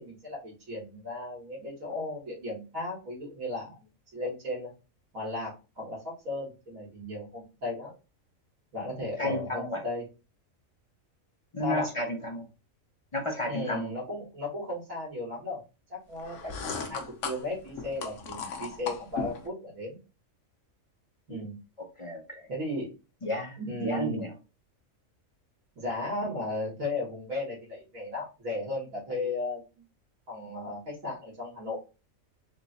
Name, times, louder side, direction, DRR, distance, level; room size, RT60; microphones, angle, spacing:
voice 1, 0.0-4.7 5.1-7.9 8.7-10.1 11.6-11.9 13.4-15.6 15.9-20.0 21.3-21.6 22.5-22.9 23.6-24.3 25.8-29.6 30.3-31.8, left 2 dB, 80° right, -3 dB, 2.0 m, -35 dB
voice 2, 9.2-9.8 11.5-12.5 13.1-13.9 21.3-21.4 22.0-22.5 23.2-24.3, left 1 dB, 40° left, 1 dB, 0.4 m, -32 dB
sound 1, 16.2-19.5, left 5 dB, 70° left, 1.0 m, -37 dB
3.8 x 2.3 x 3.9 m, 0.30 s
omnidirectional pair, 1.4 m